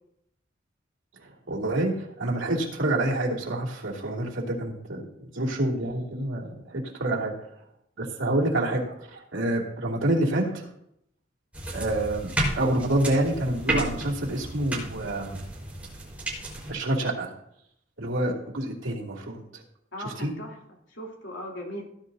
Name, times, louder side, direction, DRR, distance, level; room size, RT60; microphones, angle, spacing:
voice 1, 1.2-7.3 8.0-10.6 11.7-15.4 16.7-17.3 18.0-19.6 20.0-20.3, right 1 dB, 90° right, -1 dB, 2.8 m, -28 dB
sound 1, 11.5-16.7, right 1 dB, 5° right, 4.5 m, -32 dB
voice 2, 19.9-21.8, equal, 70° left, -1 dB, 3.2 m, -38 dB
18.0 x 11.0 x 2.8 m, 0.75 s
head